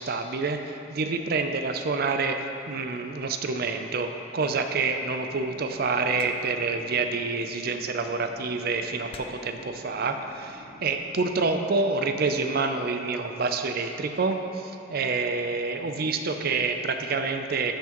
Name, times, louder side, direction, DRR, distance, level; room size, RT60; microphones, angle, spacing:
voice 1, 0.0-17.7, right 4 dB, 50° right, 6 dB, 0.5 m, -27 dB
sound 1, 5.2-11.4, equal, 70° left, 1.0 m, -49 dB
sound 2, 6.2-6.7 7.9-8.2 9.1-9.6 10.6-10.9, left 4 dB, 30° left, 0.3 m, -47 dB
13.5 x 5.6 x 3.0 m, 2.7 s
head